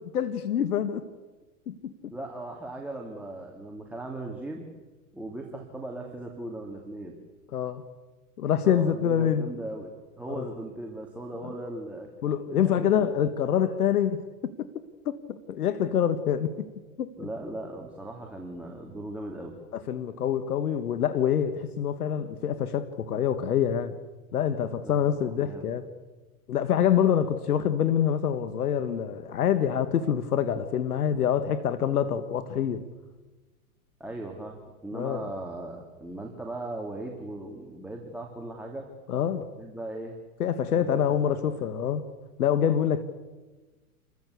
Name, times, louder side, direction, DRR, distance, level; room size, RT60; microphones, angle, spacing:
voice 1, 0.1-1.0 1.7-2.1 7.5-7.8 8.4-9.5 10.4-10.5 11.4-11.5 12.2-14.7 15.0-16.7 17.0-17.1 19.7-23.9 24.3-25.9 26.5-32.9 34.9-35.3 39.1-39.5 40.4-42.0 42.4-43.0, left 9 dB, 85° left, 1.5 m, -26 dB
voice 2, 2.1-4.6 5.1-7.1 8.6-9.9 10.2-12.1 12.5-13.1 17.2-19.5 24.8-25.7 34.0-38.9 39.6-40.1 40.7-40.8 41.2-41.7, right 2 dB, 5° right, 2.6 m, -38 dB
28.5 x 14.5 x 8.4 m
hypercardioid pair, 120°, 44 cm